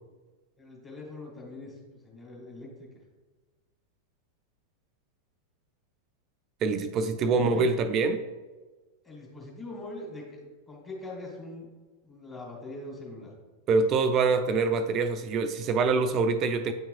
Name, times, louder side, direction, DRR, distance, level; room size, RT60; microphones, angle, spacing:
voice 1, 0.6-1.8 2.0-2.9 7.3-7.7 9.0-11.7 12.0-13.3, left 2 dB, 20° left, -2 dB, 2.3 m, -42 dB
voice 2, 6.6-8.2 13.7-16.7, right 4 dB, 35° right, 9 dB, 0.4 m, -25 dB
8.9 x 5.8 x 2.6 m, 1.3 s
figure-of-eight pair, 90°, 0 cm